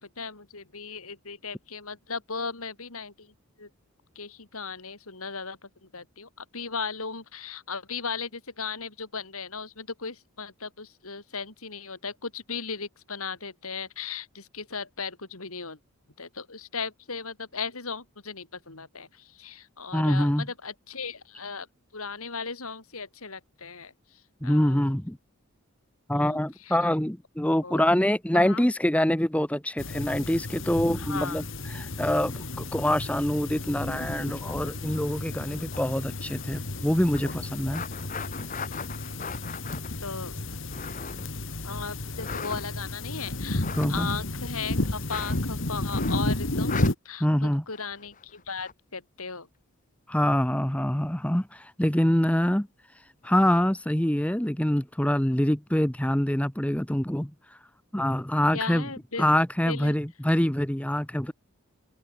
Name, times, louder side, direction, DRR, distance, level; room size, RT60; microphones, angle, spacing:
voice 1, 0.0-3.7 4.1-15.8 16.2-21.7 21.9-24.9 26.1-26.4 26.6-26.8 27.6-27.8 28.3-28.7 31.0-31.4 35.5-35.6 40.0-40.3 41.6-46.8 47.0-49.5 58.5-59.3 59.7-59.9, left 5 dB, 75° left, 3.3 m, -37 dB
voice 2, 19.9-20.5 24.4-25.2 26.1-31.4 31.7-37.8 43.8-44.1 47.2-47.6 50.1-52.7 53.2-57.3 57.9-58.9 59.2-61.3, left 1 dB, 5° left, 0.8 m, -25 dB
sound 1, 29.8-46.9, left 2 dB, 60° left, 2.0 m, -32 dB
sound 2, 34.2-36.7 37.1-41.4 42.1-43.0 43.5-43.9 45.1-45.4 45.9-46.3 46.6-46.9 47.7-48.7 53.2-53.6, left 5 dB, 35° left, 1.6 m, -40 dB
head